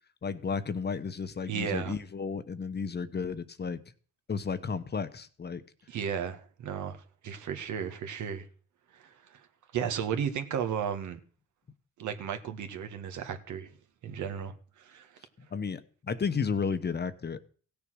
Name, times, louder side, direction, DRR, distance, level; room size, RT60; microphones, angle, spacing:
voice 1, 0.2-3.8 4.3-5.6 15.4-17.4, left 5 dB, 35° left, 1.1 m, -33 dB
voice 2, 1.5-2.0 5.9-8.4 8.9-9.4 9.7-11.2 12.0-13.7 14.0-15.1, right 7 dB, 75° right, 1.8 m, -34 dB
16.0 x 7.0 x 6.4 m
cardioid pair, 90°, 30 cm